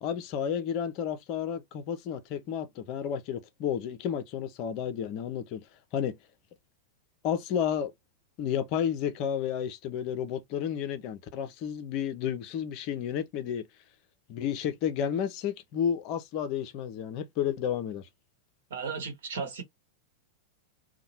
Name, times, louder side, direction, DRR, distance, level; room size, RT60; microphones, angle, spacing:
voice 1, 0.0-5.7 5.9-6.2 7.2-7.9 8.4-13.7 14.3-18.1, left 8 dB, 40° left, 0.5 m, -31 dB
voice 2, 18.7-19.6, right 5 dB, 60° right, 1.0 m, -35 dB
2.8 x 2.1 x 2.9 m
figure-of-eight pair, 90°, 0 cm